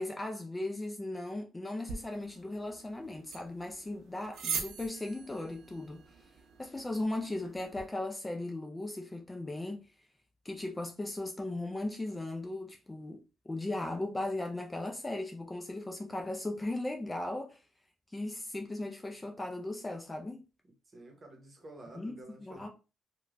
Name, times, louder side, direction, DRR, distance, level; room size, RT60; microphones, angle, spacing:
voice 1, 0.0-6.1 6.6-9.8 10.4-13.2 13.5-17.6 18.1-20.4 22.0-22.7, left 2 dB, 15° left, 0.4 m, -37 dB
sound 1, 1.8-7.9, right 6 dB, 75° right, 0.6 m, -43 dB
voice 2, 20.9-22.7, right 2 dB, 35° right, 0.9 m, -51 dB
3.0 x 2.2 x 2.5 m
cardioid pair, 90°, 0 cm